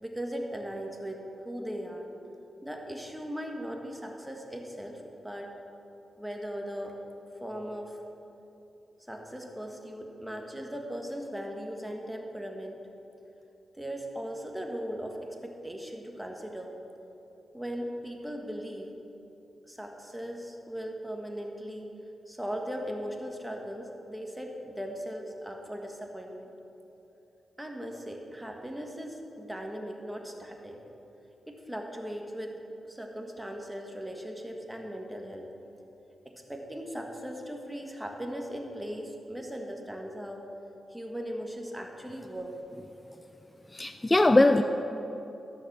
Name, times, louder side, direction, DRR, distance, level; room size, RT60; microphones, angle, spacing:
voice 1, 0.0-2.1 2.6-5.5 6.2-7.0 7.4-8.0 9.1-12.8 13.7-16.7 17.5-18.9 19.6-21.9 22.3-26.5 27.6-30.8 31.5-35.5 36.2-40.5 40.9-42.6, equal, 5° right, 2 dB, 1.5 m, -38 dB
voice 2, 43.7-44.6, left 2 dB, 20° left, 8 dB, 0.4 m, -20 dB
13.5 x 6.7 x 6.0 m, 3.0 s
cardioid pair, 65°, 0 cm